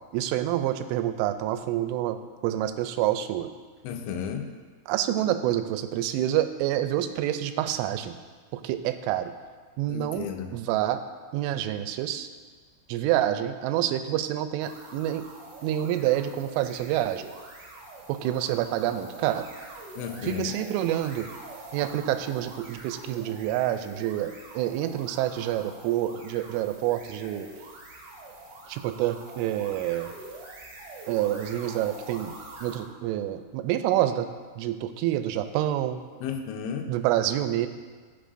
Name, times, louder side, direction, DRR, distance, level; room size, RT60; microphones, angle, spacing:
voice 1, 0.1-2.2 2.4-3.5 4.9-8.1 8.5-9.3 9.8-11.0 11.3-12.3 12.9-15.3 15.6-17.2 18.1-19.4 20.2-21.3 21.7-27.5 28.7-30.1 31.1-32.4 32.6-34.3 34.6-36.0 36.9-37.7, right 12 dB, 90° right, 9 dB, 3.1 m, -27 dB
voice 2, 3.8-4.5 9.9-10.5 20.0-20.6 36.2-36.9, left 7 dB, 80° left, 4 dB, 2.9 m, -33 dB
sound 1, 14.6-32.9, right 2 dB, 60° right, 3.1 m, -45 dB
15.0 x 6.8 x 2.6 m, 1.5 s
omnidirectional pair, 5.5 m